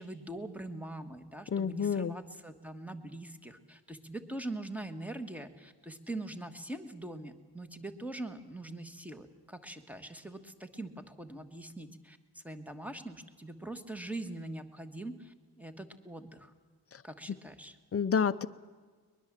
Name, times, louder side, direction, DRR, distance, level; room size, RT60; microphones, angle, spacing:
voice 1, 0.0-16.5 17.0-17.8, right 1 dB, 5° right, 8 dB, 1.3 m, -43 dB
voice 2, 1.5-2.1 16.9-17.0 17.9-18.5, left 6 dB, 35° left, 14 dB, 0.6 m, -29 dB
22.5 x 21.0 x 7.4 m, 1.5 s
wide cardioid pair, 160°, 41 cm